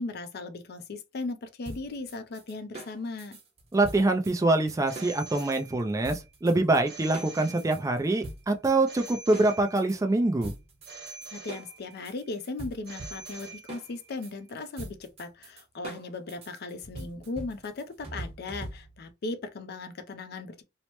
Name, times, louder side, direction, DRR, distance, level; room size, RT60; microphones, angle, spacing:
voice 1, 0.0-3.4 11.3-20.6, left 3 dB, 55° left, 0.5 m, -37 dB
sound 1, 1.6-5.6 6.0-6.8 7.1-10.0 10.4-19.1, right 1 dB, 30° right, 1.0 m, -43 dB
voice 2, 3.7-10.5, right 2 dB, 15° right, 0.4 m, -25 dB
Telephone, 4.9-6.1 6.9-8.1 8.9-10.1 10.9-12.1 12.9-14.1, right 3 dB, 55° right, 1.0 m, -45 dB
3.1 x 2.0 x 2.9 m
head